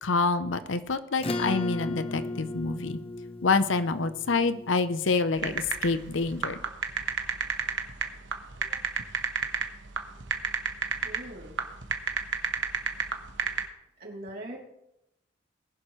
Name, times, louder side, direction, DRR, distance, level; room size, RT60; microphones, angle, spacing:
voice 1, 0.0-3.0 3.4-6.6, left 4 dB, 80° left, 12 dB, 0.7 m, -27 dB
Acoustic guitar / Strum, 1.2-6.1, left 2 dB, 30° left, 0.9 m, -36 dB
sound 1, 5.4-13.6, right 6 dB, 70° right, 1.3 m, -29 dB
voice 2, 11.0-11.6 14.0-14.6, right 1 dB, 55° right, -2 dB, 3.1 m, -41 dB
19.5 x 11.0 x 3.2 m, 0.85 s
head